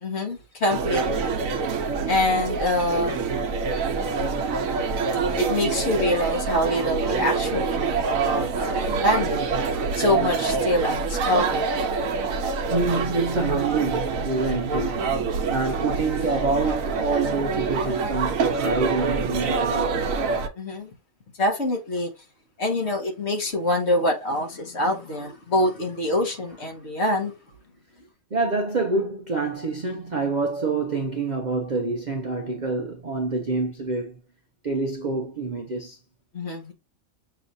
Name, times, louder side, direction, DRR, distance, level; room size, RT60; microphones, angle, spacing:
voice 1, 0.0-1.4 2.1-3.2 5.4-9.4 9.9-11.7 20.6-21.0 21.4-22.1 22.6-27.3 36.3-36.7, left 1 dB, 55° left, 1.4 m, -25 dB
sound 1, 0.7-20.5, right 4 dB, 75° right, 1.1 m, -26 dB
voice 2, 12.7-15.2 15.5-20.0 28.3-34.2 34.6-36.0, right 3 dB, 50° right, 0.5 m, -27 dB
6.5 x 2.9 x 2.6 m
omnidirectional pair, 1.5 m